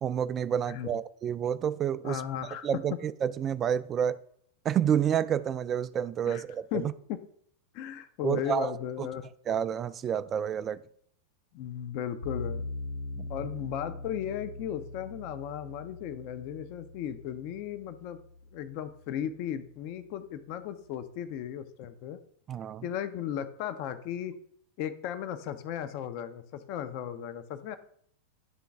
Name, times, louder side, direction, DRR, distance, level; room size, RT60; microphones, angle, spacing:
voice 1, 0.0-2.2 2.6-4.2 4.6-6.9 8.2-8.7 9.0-9.1 9.5-10.8 13.2-13.3 22.5-22.8, right 9 dB, 25° right, 15 dB, 0.3 m, -29 dB
voice 2, 2.0-2.7 6.3-6.4 6.7-6.8 7.1-7.2 7.7-9.3 11.5-12.6 13.3-18.2 18.5-22.2 22.8-24.3 24.8-27.8, left 10 dB, 45° left, 10 dB, 0.5 m, -36 dB
sound 1, 12.2-19.3, left 2 dB, 65° left, 1.7 m, -41 dB
10.5 x 3.8 x 3.5 m, 0.64 s
figure-of-eight pair, 90°, 0 cm